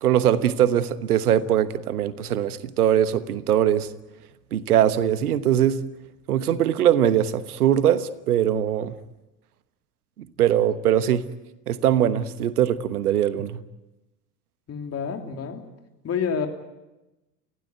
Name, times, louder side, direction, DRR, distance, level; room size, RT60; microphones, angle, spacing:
voice 1, 0.0-3.9 4.5-5.9 6.3-8.9 10.4-11.3 11.7-13.6, right 10 dB, 70° right, 1.3 m, -21 dB
voice 2, 14.7-15.6 16.0-16.5, left 6 dB, 30° left, 3.2 m, -28 dB
29.5 x 16.0 x 9.3 m
figure-of-eight pair, 70°, 47 cm